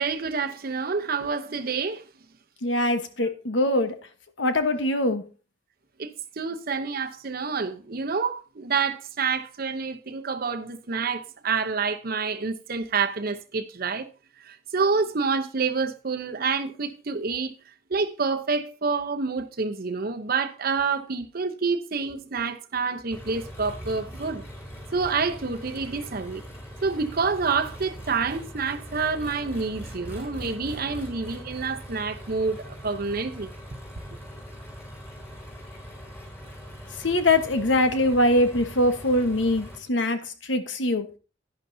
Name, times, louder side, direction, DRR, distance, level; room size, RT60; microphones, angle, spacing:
voice 1, 0.0-2.0 6.0-14.1 14.4-17.5 17.9-24.4 24.9-26.4 26.8-33.5, right 5 dB, 50° right, 0.8 m, -28 dB
voice 2, 2.6-3.9 4.4-5.2 37.0-41.1, left 1 dB, 75° left, 1.2 m, -23 dB
Engine, 23.1-39.8, equal, 15° left, 3.4 m, -41 dB
11.0 x 10.5 x 2.7 m
head